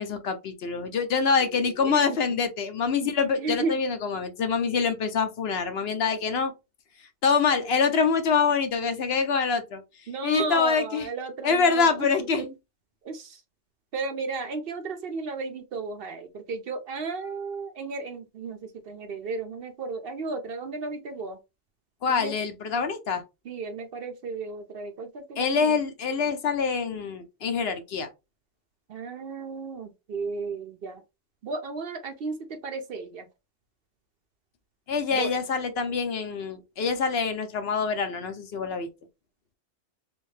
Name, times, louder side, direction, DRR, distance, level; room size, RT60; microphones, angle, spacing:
voice 1, 0.0-6.5 7.2-9.8 10.2-11.1 11.4-12.5 22.0-23.2 25.4-28.1 34.9-38.9, left 5 dB, 65° left, 0.8 m, -25 dB
voice 2, 3.4-3.7 10.1-11.9 12.4-12.5 13.1-13.3 13.9-18.6 18.9-21.4 22.1-22.3 23.5-25.8 28.9-31.0 31.4-32.4 32.6-33.2 35.1-35.3, right 4 dB, 60° right, 0.8 m, -34 dB
3.4 x 2.6 x 3.2 m
omnidirectional pair, 1.2 m